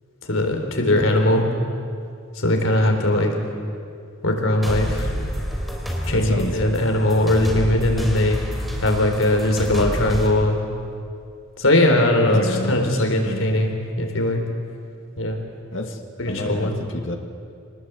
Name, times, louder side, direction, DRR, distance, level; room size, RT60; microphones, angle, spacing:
voice 1, 0.3-1.5 2.4-3.3 4.2-5.1 6.1-8.4 8.8-10.6 11.6-14.4 15.2-15.4 16.2-16.8, left 1 dB, 85° left, 3 dB, 3.9 m, -20 dB
sound 1, 4.6-10.3, equal, ahead, 3.5 m, -28 dB
voice 2, 6.1-6.6 12.3-13.5 15.7-17.2, left 1 dB, 70° left, 3 dB, 2.2 m, -30 dB
25.5 x 19.5 x 8.2 m, 2.4 s
head